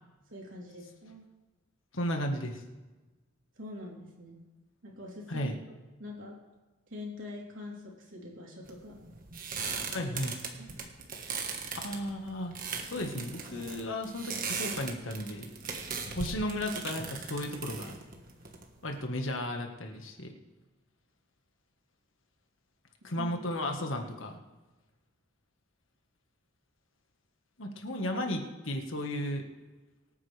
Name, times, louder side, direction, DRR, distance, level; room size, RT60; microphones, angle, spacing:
voice 1, 0.3-1.2 3.6-4.4 4.8-5.5 6.0-6.4 6.9-9.0 9.9-10.1 10.6-10.7 23.2-23.3, left 1 dB, 70° right, -2 dB, 3.6 m, -44 dB
voice 2, 1.9-2.6 5.3-5.5 9.9-10.3 11.7-12.5 12.9-15.5 16.1-17.9 18.8-20.3 23.0-24.4 27.6-29.4, left 1 dB, 70° left, 3 dB, 1.6 m, -34 dB
sound 1, 8.7-19.0, right 5 dB, 45° right, 1.5 m, -39 dB
25.0 x 9.2 x 3.5 m, 1.2 s
head